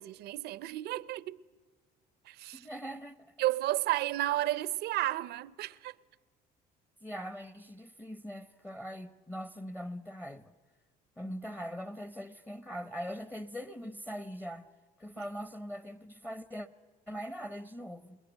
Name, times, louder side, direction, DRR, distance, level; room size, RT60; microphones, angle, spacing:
voice 1, 0.0-1.4 2.2-2.7 3.4-5.9, right 15 dB, 75° right, 0.7 m, -32 dB
voice 2, 2.5-3.3 7.0-10.5 11.2-14.7 15.0-16.7 17.1-18.2, equal, 10° left, 0.8 m, -41 dB
28.5 x 20.5 x 7.9 m
cardioid pair, 110°, 17 cm